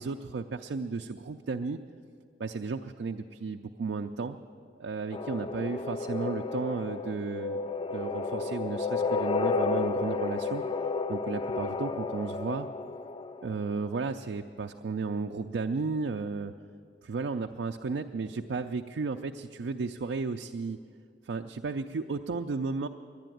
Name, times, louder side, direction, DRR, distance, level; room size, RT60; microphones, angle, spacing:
voice 1, 0.0-1.8 2.4-4.4 4.8-7.6 7.9-10.6 11.1-12.7 13.4-16.5 17.0-20.8 21.2-22.9, right 4 dB, 85° right, 4 dB, 0.4 m, -34 dB
sound 1, 5.1-13.7, left 4 dB, 30° left, 0.3 m, -32 dB
11.0 x 10.5 x 9.1 m, 2.3 s
head